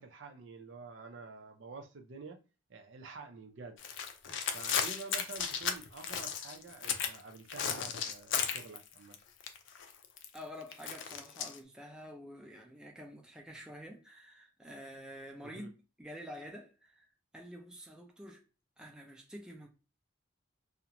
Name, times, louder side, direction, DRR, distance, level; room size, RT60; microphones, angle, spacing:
voice 1, 0.0-2.4 2.7-3.8 4.5-9.2 15.4-15.7, right 4 dB, 65° right, 0.5 m, -48 dB
sound 1, 3.8-7.2 7.5-9.1 9.4-11.6, left 7 dB, 65° left, 0.4 m, -35 dB
voice 2, 10.3-15.7 16.0-17.1 17.3-18.4 18.8-19.7, equal, 5° right, 0.4 m, -48 dB
2.4 x 2.1 x 2.8 m
head